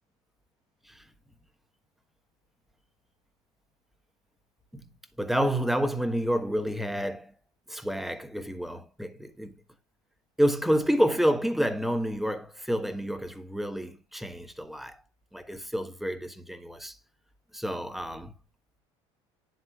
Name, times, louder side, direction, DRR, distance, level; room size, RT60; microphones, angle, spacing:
voice 1, 5.2-7.3 7.7-9.5 10.4-15.0 15.3-17.0 17.5-18.3, equal, ahead, 1.2 m, -29 dB
9.5 x 7.8 x 2.3 m
supercardioid pair, 115°, 12 cm